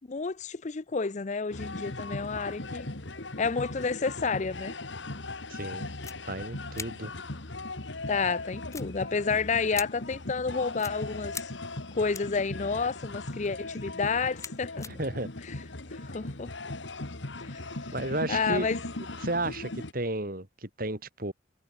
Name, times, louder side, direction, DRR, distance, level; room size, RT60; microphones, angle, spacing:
voice 1, 0.1-2.9 3.4-4.7 8.1-11.5 11.9-14.9 16.0-16.5 17.4-17.6 18.3-18.8, left 4 dB, 40° left, 0.5 m, -30 dB
sound 1, 1.5-19.9, left 2 dB, 75° left, 2.3 m, -38 dB
voice 2, 5.5-5.9 6.3-7.1 14.8-15.3 17.9-18.7 19.2-21.3, right 2 dB, 50° right, 4.8 m, -33 dB
sound 2, 6.0-6.1 6.7-6.9 8.7-9.3 9.7-9.9 10.8-10.9 11.3-11.4 12.1-12.4 13.3-13.6 14.0-14.9, left 5 dB, 15° left, 1.9 m, -40 dB
head